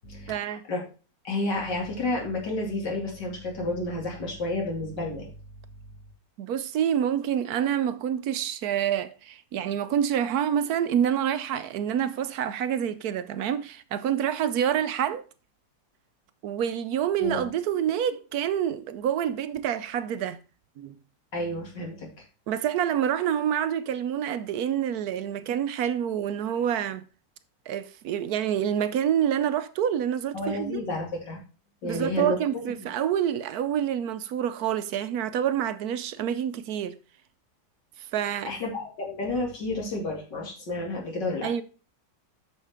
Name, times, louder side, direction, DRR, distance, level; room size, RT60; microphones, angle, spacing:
voice 1, 0.3-0.6 6.4-15.2 16.4-20.4 20.8-21.0 22.5-27.0 27.7-30.8 31.8-37.0 38.1-38.5 41.4-41.6, right 9 dB, 70° right, 1.0 m, -27 dB
voice 2, 1.2-5.3 17.2-17.5 21.3-22.1 30.3-31.4 31.8-32.4 38.4-41.5, left 2 dB, 70° left, 2.8 m, -30 dB
9.2 x 6.6 x 3.4 m
omnidirectional pair, 2.0 m